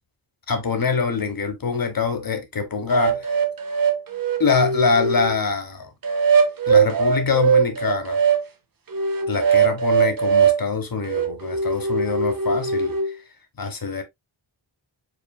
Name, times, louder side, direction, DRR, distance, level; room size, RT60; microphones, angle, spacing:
voice 1, 0.5-3.3 4.4-5.9 6.7-8.2 9.3-13.2 13.6-14.0, left 5 dB, 45° left, 1.3 m, -24 dB
sound 1, 2.9-5.3 6.0-8.4 8.9-10.6 11.1-13.1, right 6 dB, 45° right, 0.9 m, -21 dB
5.0 x 4.3 x 2.3 m
wide cardioid pair, 105°, 48 cm